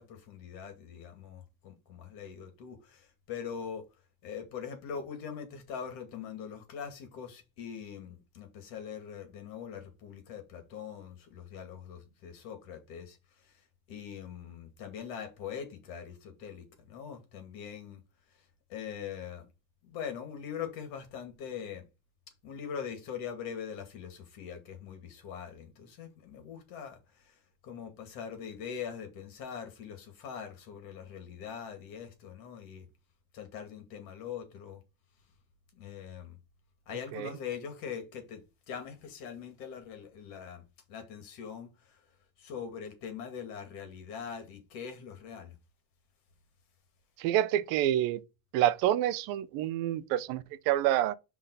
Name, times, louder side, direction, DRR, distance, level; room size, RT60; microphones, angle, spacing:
voice 1, 0.0-3.8 4.2-13.2 13.4-13.5 13.9-18.0 18.7-19.5 19.8-21.9 22.4-27.3 27.6-32.9 33.3-34.8 35.7-36.4 36.9-41.9 42.4-45.5, left 7 dB, 60° left, 2.5 m, -42 dB
voice 2, 47.2-48.2 48.5-51.1, right 12 dB, 60° right, 0.7 m, -28 dB
5.8 x 3.6 x 5.3 m
cardioid pair, 175°, 38 cm